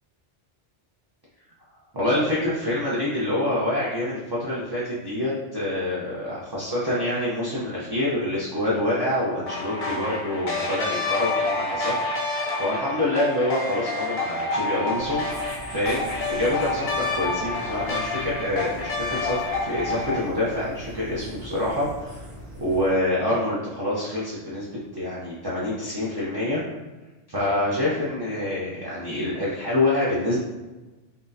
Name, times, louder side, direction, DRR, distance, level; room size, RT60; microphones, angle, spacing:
voice 1, 1.9-12.1 12.5-15.3 15.7-22.3 22.6-26.7 27.3-30.4, left 1 dB, 25° right, -8 dB, 0.7 m, -26 dB
sound 1, 9.5-20.2, left 3 dB, 45° left, 0.9 m, -28 dB
sound 2, 14.9-22.9, right 1 dB, 55° right, 1.4 m, -42 dB
5.6 x 2.4 x 2.7 m, 1.2 s
omnidirectional pair, 1.2 m